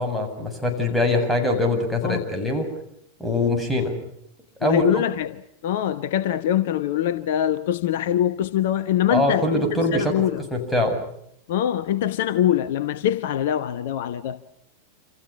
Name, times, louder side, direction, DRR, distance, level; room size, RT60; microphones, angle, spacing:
voice 1, 0.0-2.7 3.2-4.0 4.6-5.0 9.1-10.1 10.5-11.0, left 1 dB, ahead, 7.6 m, -23 dB
voice 2, 4.6-10.4 11.5-14.5, left 11 dB, 55° left, 1.0 m, -24 dB
29.5 x 28.0 x 5.9 m
figure-of-eight pair, 90°, 0 cm